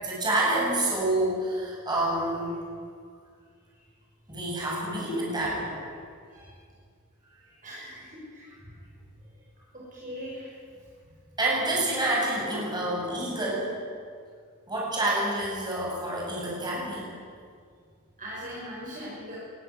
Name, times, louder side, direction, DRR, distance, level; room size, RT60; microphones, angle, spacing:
voice 1, 0.0-2.5 4.3-5.8 11.4-13.7 14.7-17.0, right 1 dB, 20° right, -5 dB, 7.6 m, -28 dB
voice 2, 7.6-8.5 9.9-10.5 18.2-19.4, equal, 40° right, -6 dB, 5.8 m, -40 dB
21.5 x 13.5 x 9.8 m, 2.1 s
head